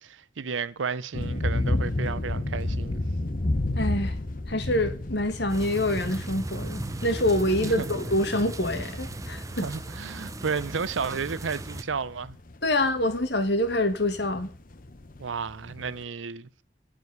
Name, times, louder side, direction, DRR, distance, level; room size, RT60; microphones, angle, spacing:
voice 1, 0.0-3.0 7.6-7.9 9.5-12.4 15.2-16.5, right 5 dB, 85° right, 0.7 m, -32 dB
sound 1, 1.1-16.0, left 2 dB, 45° left, 0.9 m, -32 dB
voice 2, 3.8-4.1 4.5-9.7 12.6-14.5, left 1 dB, 60° left, 2.0 m, -26 dB
sound 2, 5.5-11.8, right 1 dB, 15° right, 0.7 m, -37 dB
14.5 x 5.1 x 9.4 m
head